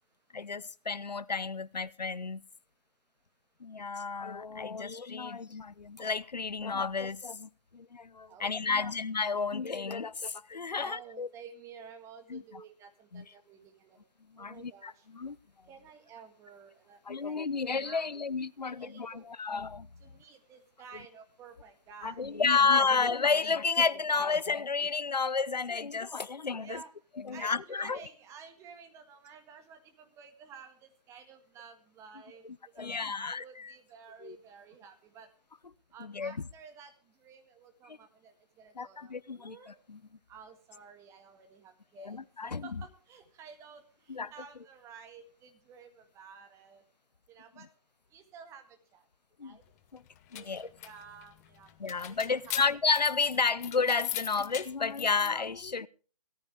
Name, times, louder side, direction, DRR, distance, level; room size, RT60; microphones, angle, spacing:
voice 1, 0.3-2.4 3.6-11.3 12.3-12.4 13.1-13.2 14.3-15.4 17.1-19.9 22.0-26.8 27.2-28.0 32.8-33.7 34.2-34.4 36.0-36.4 38.8-40.0 42.0-42.8 44.1-44.3 49.4-49.6 49.9-50.0 50.3-50.7 51.8-55.9, left 4 dB, 90° left, 0.7 m, -31 dB
voice 2, 8.3-9.0 10.7-14.0 14.4-15.1 15.7-17.4 17.8-18.3 18.6-19.2 20.0-22.4 25.7-25.9 26.2-26.9 27.3-32.4 32.7-35.3 35.9-36.9 37.2-39.8 40.3-46.8 47.3-47.7 48.1-49.0 49.4-49.6 50.3-51.7 52.1-52.7, right 6 dB, 15° right, 1.7 m, -52 dB
sound 1, 50.0-55.3, left 13 dB, 25° left, 1.0 m, -41 dB
17.0 x 14.0 x 3.5 m
figure-of-eight pair, 145°, 21 cm